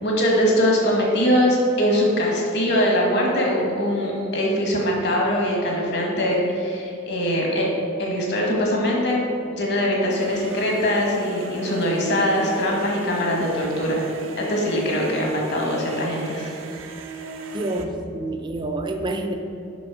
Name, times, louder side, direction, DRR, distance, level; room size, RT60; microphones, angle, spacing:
voice 1, 0.0-7.7 8.0-9.3 9.6-14.0 14.4-16.5, equal, 60° left, -2 dB, 1.5 m, -22 dB
sound 1, 10.1-17.8, right 3 dB, 80° right, 0.6 m, -38 dB
voice 2, 17.5-19.3, right 2 dB, 25° right, 4 dB, 0.5 m, -27 dB
6.1 x 5.5 x 4.9 m, 2.7 s
head